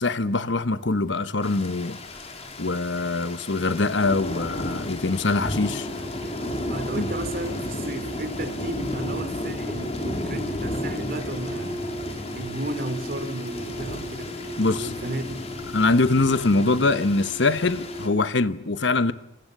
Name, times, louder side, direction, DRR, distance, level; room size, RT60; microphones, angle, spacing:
voice 1, 0.0-2.0 2.6-5.9 7.0-7.1 14.6-14.9 15.7-19.1, left 3 dB, 60° left, 1.1 m, -23 dB
sound 1, 1.4-18.1, left 1 dB, 30° left, 3.5 m, -33 dB
sound 2, 5.5-18.3, equal, 20° right, 1.6 m, -38 dB
voice 2, 6.7-11.8 12.4-15.5, right 1 dB, 50° right, 3.5 m, -34 dB
29.0 x 26.5 x 6.7 m
head